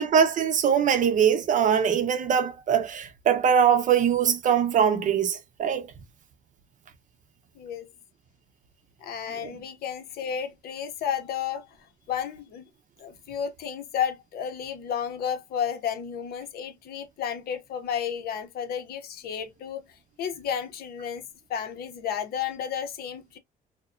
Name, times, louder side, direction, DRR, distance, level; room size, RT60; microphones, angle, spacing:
voice 1, 0.0-5.9 9.4-9.5, right 8 dB, 50° right, 0.7 m, -22 dB
voice 2, 7.6-7.9 9.0-11.7 12.1-12.7 13.0-19.8 20.2-21.2 21.5-23.4, left 8 dB, 65° left, 0.7 m, -32 dB
2.8 x 2.1 x 2.4 m
cardioid pair, 110°, 17 cm